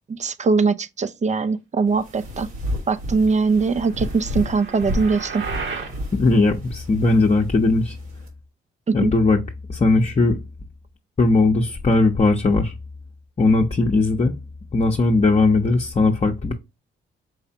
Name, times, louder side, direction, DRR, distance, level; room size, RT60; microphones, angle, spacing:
voice 1, 0.1-2.5 2.9-5.4 8.9-9.1, right 4 dB, 35° right, 0.5 m, -21 dB
sound 1, 1.9-8.3, left 1 dB, 90° right, 1.4 m, -32 dB
sound 2, 3.7-6.0, right 5 dB, 60° right, 1.3 m, -33 dB
voice 2, 6.1-8.0 8.9-9.4 9.7-10.4 11.2-12.7 13.4-14.3 14.7-16.5, left 3 dB, 30° left, 0.7 m, -18 dB
4.9 x 3.2 x 2.8 m
supercardioid pair, 55°, 21 cm